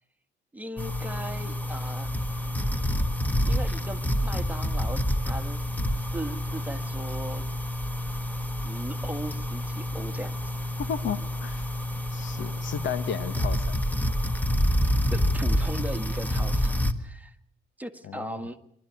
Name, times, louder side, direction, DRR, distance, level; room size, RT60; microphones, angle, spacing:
voice 1, 0.5-2.1 3.4-5.7 5.9-7.5 8.1-8.2 8.6-10.7 15.1-17.3 17.8-18.6, right 1 dB, 10° right, 6 dB, 1.7 m, -38 dB
sound 1, 0.8-16.9, equal, 10° left, 1.4 m, -28 dB
voice 2, 10.8-11.7 12.1-13.7 18.0-18.5, left 8 dB, 70° left, 13 dB, 1.3 m, -34 dB
24.5 x 12.5 x 9.4 m, 0.73 s
cardioid pair, 90°, 20 cm